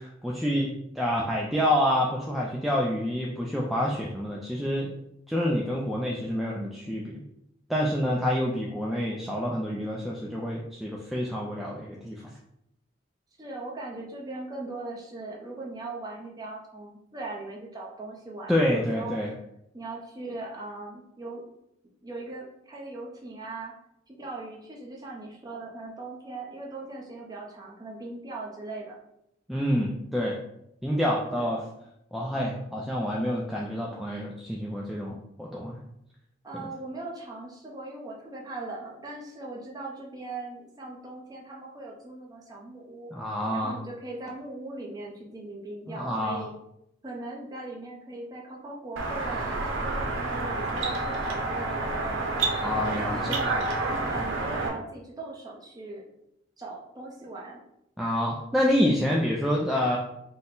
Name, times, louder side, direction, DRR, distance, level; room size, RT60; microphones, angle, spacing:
voice 1, 0.0-4.9 5.3-7.2 7.7-12.3 18.5-19.3 29.5-30.4 30.8-31.6 32.1-35.8 36.5-36.7 43.1-43.7 45.9-46.4 52.6-53.4 58.0-60.0, equal, ahead, -4 dB, 0.3 m, -28 dB
voice 2, 13.4-19.2 19.7-21.4 22.0-23.7 24.1-29.0 31.4-31.5 36.4-43.1 43.5-46.5 47.0-52.2 52.8-53.5 54.0-56.0 56.6-57.6, right 2 dB, 20° right, -3 dB, 0.7 m, -39 dB
sound 1, 49.0-54.7, right 3 dB, 85° right, 0.7 m, -29 dB
4.1 x 2.2 x 3.7 m, 0.80 s
head